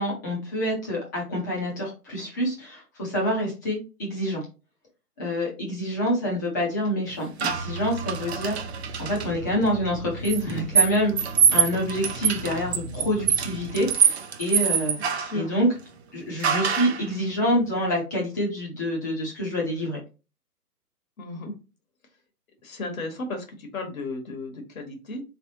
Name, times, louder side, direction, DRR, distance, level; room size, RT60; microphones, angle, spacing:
voice 1, 0.0-4.4 5.2-8.6 9.0-14.9 15.3-15.7 16.1-20.0, equal, 15° left, -3 dB, 0.6 m, -27 dB
sound 1, 7.4-9.3 10.2-15.4 16.4-17.1, right 7 dB, 45° right, 0.6 m, -24 dB
sound 2, 7.5-13.9, right 3 dB, 85° right, 0.9 m, -38 dB
voice 2, 15.0-15.5 21.2-21.5 22.6-25.2, left 2 dB, 60° left, 5 dB, 1.4 m, -34 dB
3.4 x 3.3 x 2.8 m, 0.31 s
hypercardioid pair, 140°, 47 cm